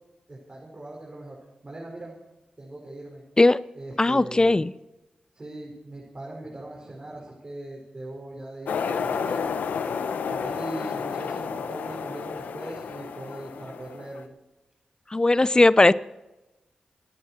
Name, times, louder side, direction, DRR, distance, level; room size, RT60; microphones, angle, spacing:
voice 1, 0.3-1.4 1.6-2.2 2.6-3.2 3.7-4.6 5.3-9.4 10.3-14.3, right 2 dB, 40° right, -3 dB, 5.5 m, -40 dB
voice 2, 4.0-4.7 15.1-15.9, left 2 dB, 25° left, 17 dB, 0.7 m, -18 dB
sound 1, 8.7-14.2, left 6 dB, 90° left, 1.0 m, -31 dB
27.0 x 9.2 x 4.5 m, 0.99 s
cardioid pair, 45°, 3 cm